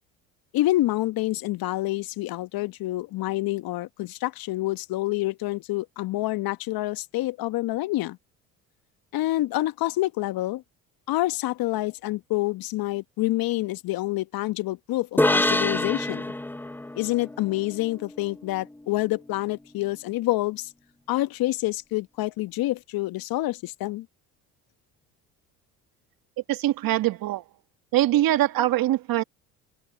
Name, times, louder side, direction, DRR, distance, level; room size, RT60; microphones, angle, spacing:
voice 1, 0.5-8.2 9.1-10.6 11.1-16.3 16.9-20.7 21.1-24.1, left 17 dB, 60° left, 1.3 m, -27 dB
sound 1, 15.2-18.7, left 1 dB, 5° left, 0.7 m, -27 dB
voice 2, 26.5-27.4 27.9-29.2, right 14 dB, 55° right, 1.9 m, -23 dB
hypercardioid pair, 60°, 41 cm